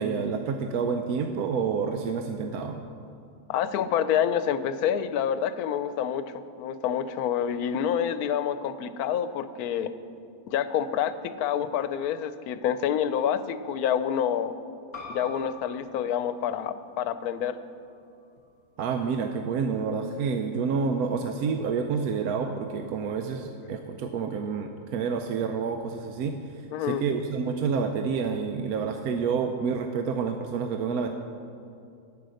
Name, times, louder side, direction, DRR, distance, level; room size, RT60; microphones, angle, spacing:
voice 1, 0.0-2.8 18.8-26.4 26.8-31.1, right 5 dB, 80° right, 5 dB, 1.1 m, -28 dB
voice 2, 3.5-9.9 10.5-14.5 15.1-17.5 26.7-27.0, left 9 dB, 85° left, 12 dB, 1.1 m, -27 dB
sound 1, 14.9-20.1, left 3 dB, 40° left, 2.2 m, -47 dB
10.5 x 9.3 x 6.4 m, 2.5 s
omnidirectional pair, 1.6 m